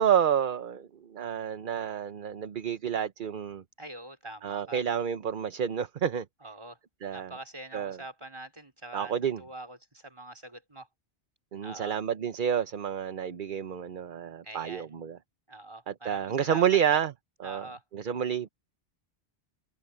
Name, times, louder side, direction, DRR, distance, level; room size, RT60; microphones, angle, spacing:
voice 1, 0.0-3.6 4.4-6.3 7.0-7.3 7.7-8.0 8.9-9.4 11.5-15.2 15.9-17.1 17.4-17.7 17.9-18.5, right 8 dB, 55° right, 0.9 m, -29 dB
voice 2, 3.8-4.8 6.4-6.8 7.1-10.9 11.6-11.9 14.4-15.0 15.5-17.0 17.4-17.8, right 1 dB, 25° right, 4.6 m, -44 dB
omnidirectional pair, 1.1 m